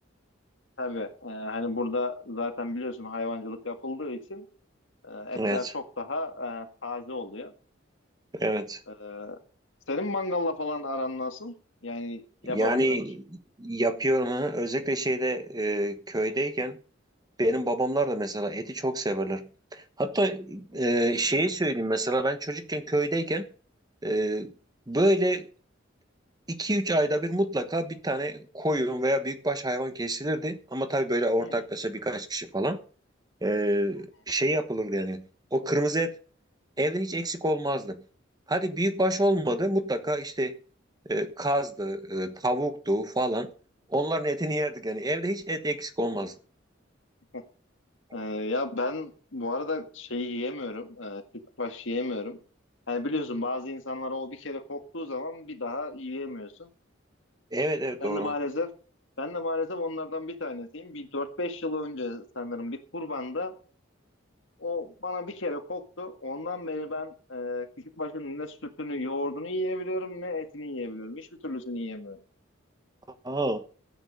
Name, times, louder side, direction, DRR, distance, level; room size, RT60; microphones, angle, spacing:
voice 1, 0.8-4.5 5.0-7.5 8.9-9.4 9.9-11.5 11.8-13.0 20.8-20.9 31.4-31.5 47.3-47.4 48.1-51.2 51.6-52.4 52.9-56.7 58.0-58.7 59.2-63.5 64.6-67.7 68.0-72.2, left 2 dB, 70° left, 1.9 m, -33 dB
voice 2, 5.3-5.7 8.3-8.8 12.5-16.8 17.4-23.5 24.0-24.5 24.9-25.5 26.5-32.8 33.4-35.2 35.5-36.1 36.8-38.0 38.5-40.6 41.1-43.5 43.9-46.3 57.5-58.3 73.2-73.6, right 1 dB, 20° right, 1.1 m, -27 dB
13.5 x 9.0 x 5.3 m
head